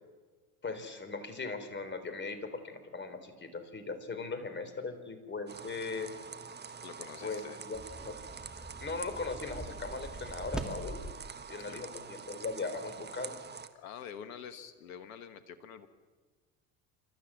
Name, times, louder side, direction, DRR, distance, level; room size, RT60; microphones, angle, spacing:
voice 1, 0.6-6.1 7.2-8.2 8.8-11.0 11.5-13.4, left 4 dB, 25° left, 9 dB, 3.7 m, -39 dB
sound 1, 5.5-13.7, right 6 dB, 25° right, 1.5 m, -46 dB
voice 2, 6.8-7.6 11.6-11.8 13.7-15.9, left 7 dB, 80° left, 11 dB, 1.3 m, -46 dB
sound 2, 7.7-11.1, right 2 dB, ahead, 2.6 m, -43 dB
28.5 x 13.0 x 7.5 m, 1.5 s
hypercardioid pair, 70°, 41 cm